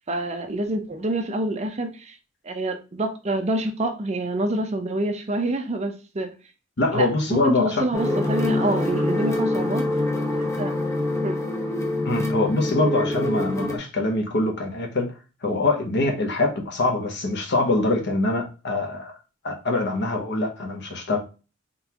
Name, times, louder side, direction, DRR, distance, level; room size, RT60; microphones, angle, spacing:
voice 1, 0.1-2.2 2.4-6.4 6.9-9.8 10.4-10.7 11.2-11.4, right 1 dB, 35° right, 0.6 m, -27 dB
voice 2, 6.8-7.9 12.0-15.1 15.4-19.1 19.4-21.2, left 2 dB, 60° left, 0.9 m, -24 dB
sound 1, 7.9-13.8, left 2 dB, 15° left, 0.9 m, -25 dB
3.8 x 3.5 x 2.9 m
head